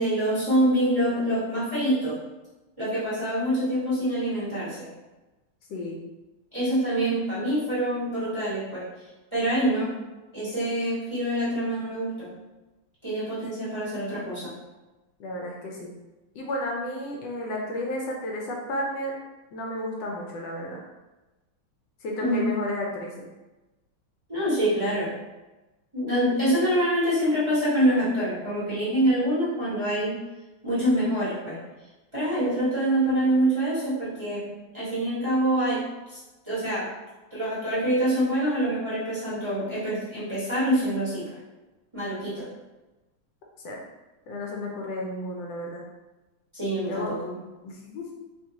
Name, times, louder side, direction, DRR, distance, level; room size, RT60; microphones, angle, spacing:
voice 1, 0.0-2.2 2.8-4.9 6.5-8.9 9.3-10.0 10.3-12.3 13.0-14.5 22.2-22.6 24.3-25.2 25.9-30.2 30.6-31.6 32.1-35.8 36.1-36.2 36.4-36.9 37.3-41.3 41.9-42.5 46.5-47.4, right 1 dB, 25° right, -10 dB, 0.7 m, -25 dB
voice 2, 5.7-6.0 15.2-15.9 16.3-19.2 19.5-20.8 22.0-23.1 43.6-43.8 44.3-45.8 46.9-47.1 47.6-48.1, left 1 dB, 70° left, -1 dB, 1.2 m, -32 dB
3.7 x 2.6 x 2.8 m, 1.1 s
omnidirectional pair, 2.3 m